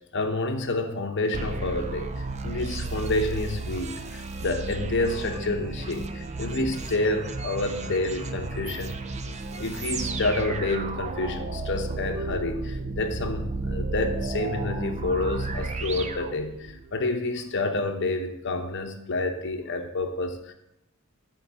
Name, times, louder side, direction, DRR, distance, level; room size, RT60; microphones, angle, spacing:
voice 1, 0.1-9.0 9.5-20.5, left 2 dB, 55° left, 6 dB, 0.9 m, -29 dB
sound 1, 1.3-16.9, right 3 dB, 30° right, 0.6 m, -33 dB
9.2 x 3.9 x 7.2 m, 0.81 s
head